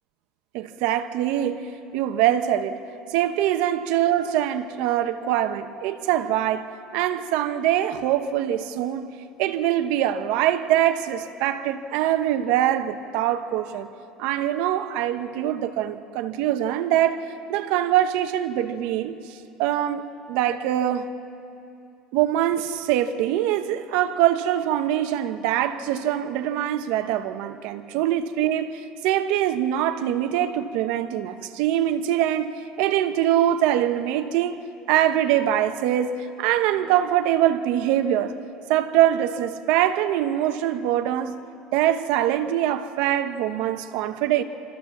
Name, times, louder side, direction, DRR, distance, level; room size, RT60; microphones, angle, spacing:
voice 1, 0.5-2.8 3.1-13.9 14.2-17.2 17.5-21.1 22.1-34.6 34.9-38.3 38.7-41.4 41.7-44.4, right 11 dB, 65° right, 1.0 m, -23 dB
25.5 x 14.0 x 7.3 m
cardioid pair, 175°, 2 cm